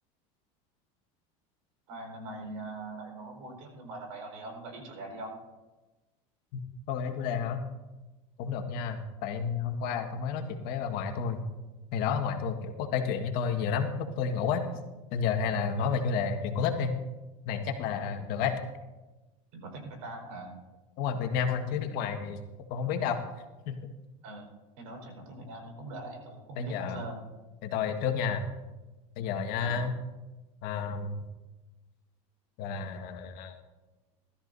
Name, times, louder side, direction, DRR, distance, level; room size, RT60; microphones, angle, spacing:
voice 1, 1.9-5.4 15.8-15.9 18.3-18.5 19.5-20.5 24.2-24.5 24.8-27.2 29.6-29.8, right 2 dB, 80° right, 2 dB, 4.6 m, -42 dB
voice 2, 6.9-7.6 8.4-11.4 11.9-14.6 15.1-17.0 17.4-18.6 21.0-22.4 22.7-23.2 23.7-23.8 26.6-27.0 27.6-28.4 29.2-29.9 30.6-31.2 32.6-33.6, left 6 dB, 60° left, 5 dB, 1.6 m, -31 dB
19.5 x 13.0 x 2.7 m, 1.1 s
supercardioid pair, 115°, 17 cm